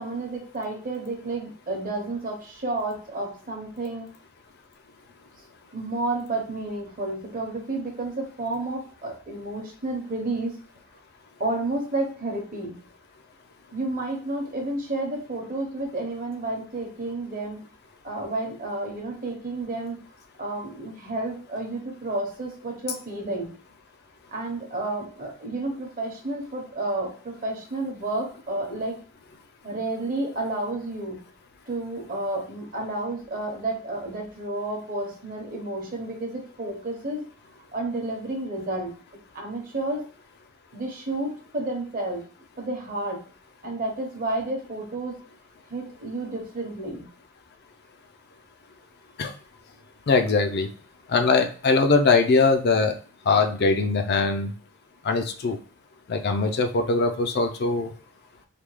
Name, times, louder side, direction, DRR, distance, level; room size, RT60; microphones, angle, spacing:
voice 1, 0.0-4.1 5.7-10.5 11.4-12.8 13.7-17.7 18.0-20.0 20.4-23.5 24.3-29.0 29.6-31.2 31.7-37.2 37.7-39.0 39.3-40.0 40.7-42.3 42.6-43.2 43.6-45.1 45.7-47.0, right 2 dB, 35° right, 2 dB, 0.8 m, -31 dB
voice 2, 50.1-50.7 51.1-52.9 53.3-54.5 55.0-55.6 56.1-57.9, left 4 dB, 45° left, 5 dB, 0.4 m, -21 dB
3.4 x 2.2 x 3.1 m, 0.40 s
head